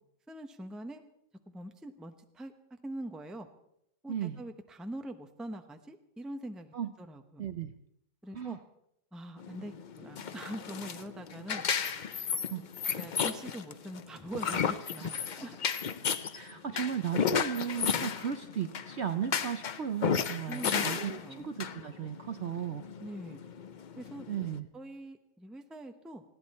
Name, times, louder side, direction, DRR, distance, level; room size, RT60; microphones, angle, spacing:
voice 1, 0.3-1.0 1.5-3.5 4.0-7.5 8.2-8.6 9.1-11.6 13.0-15.6 20.5-20.9 21.2-21.5 23.0-23.4 24.0-24.3 24.7-26.2, right 1 dB, ahead, 7 dB, 0.7 m, -43 dB
voice 2, 4.1-4.4 6.7-6.9 7.4-7.7 8.3-8.6 12.5-12.6 15.0-15.1 16.3-22.9 24.3-24.7, right 9 dB, 55° right, 9 dB, 0.8 m, -35 dB
sound 1, 9.4-24.6, left 7 dB, 75° left, 0.4 m, -34 dB
20.0 x 15.5 x 4.3 m, 0.76 s
omnidirectional pair, 1.7 m